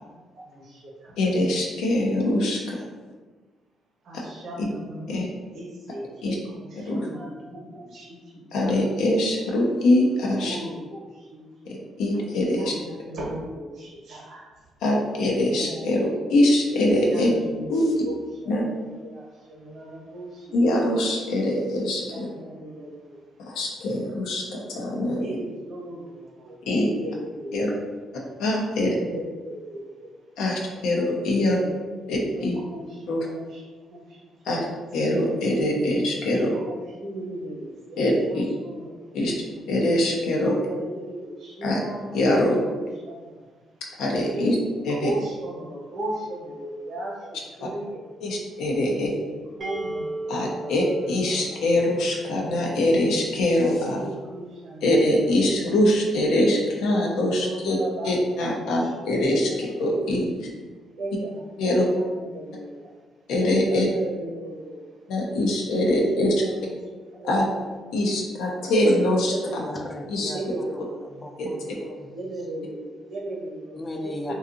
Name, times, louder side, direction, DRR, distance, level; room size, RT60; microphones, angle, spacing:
voice 1, 0.1-1.1 4.0-8.7 10.4-11.8 12.1-12.2 12.5-14.5 15.3-16.1 17.1-18.2 18.4-20.9 22.1-23.6 25.2-27.7 28.8-30.2 31.4-32.0 32.3-34.5 36.3-39.2 40.4-43.6 44.3-48.1 48.9-50.8 51.5-51.6 54.0-54.9 56.9-59.9 60.9-63.0 63.7-65.2 65.8-67.6 68.0-68.2 69.3-70.0 70.3-71.3 72.1-73.8 74.3-74.4, right 1 dB, 70° right, -3 dB, 0.8 m, -37 dB
voice 2, 1.2-2.8 5.1-5.3 6.2-6.4 6.9-7.0 8.5-10.6 12.0-12.7 14.8-16.0 16.3-17.3 17.7-17.8 18.5-18.6 20.5-22.3 23.5-25.3 26.7-26.9 27.5-27.7 28.4-28.9 30.4-31.6 32.1-32.5 33.1-33.2 34.5-34.6 34.9-36.5 38.0-38.4 39.1-39.3 39.7-40.6 41.6-41.8 42.1-42.5 44.0-44.6 44.8-45.1 48.2-49.1 50.3-54.0 54.8-57.8 58.0-60.3 61.6-61.8 63.3-63.9 65.1-66.3 67.2-67.5 67.9-69.3 70.1-70.3 71.4-71.5, left 1 dB, 85° left, -1 dB, 0.5 m, -23 dB
sound 1, 49.6-53.3, right 1 dB, 30° right, 0.5 m, -37 dB
voice 3, 69.4-70.7 71.0-72.2 73.8-74.3, left 1 dB, 25° left, 3 dB, 0.3 m, -36 dB
2.6 x 2.3 x 2.5 m, 1.4 s
cardioid pair, 90°, 0 cm